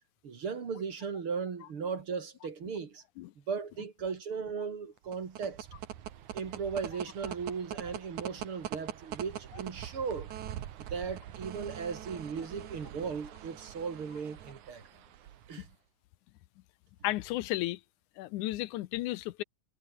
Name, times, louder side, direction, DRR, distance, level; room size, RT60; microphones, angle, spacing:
voice 1, 0.2-3.0 3.5-5.7 6.3-10.3 10.8-14.8 15.5-15.7, right 5 dB, 45° right, 2.9 m, -37 dB
sound 1, 5.0-15.7, right 11 dB, 70° right, 2.8 m, -43 dB
voice 2, 17.0-17.8 18.2-19.4, left 17 dB, 75° left, 2.1 m, -33 dB
omnidirectional pair, 3.7 m